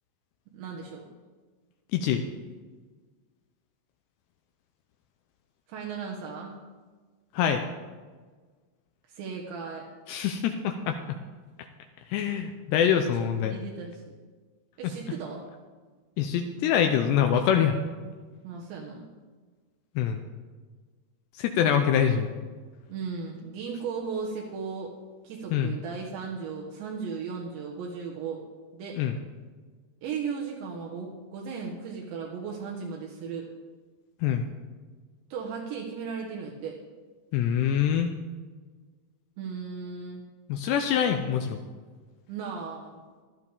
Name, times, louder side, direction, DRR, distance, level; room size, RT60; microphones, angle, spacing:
voice 1, 0.5-1.1 5.7-6.6 9.1-9.9 13.4-14.1 14.8-15.4 18.4-19.1 22.9-24.9 25.2-28.4 28.7-29.0 30.0-33.5 35.3-36.8 39.4-40.2 42.3-43.0, right 5 dB, 80° right, -2 dB, 3.5 m, -36 dB
voice 2, 1.9-2.2 7.3-7.6 10.1-11.2 12.1-13.6 16.2-17.8 20.0-20.2 21.3-22.3 25.5-25.7 29.0-29.1 34.2-34.5 37.3-38.1 40.5-41.6, left 8 dB, 80° left, 5 dB, 2.7 m, -25 dB
16.0 x 12.0 x 3.5 m, 1.4 s
omnidirectional pair, 5.2 m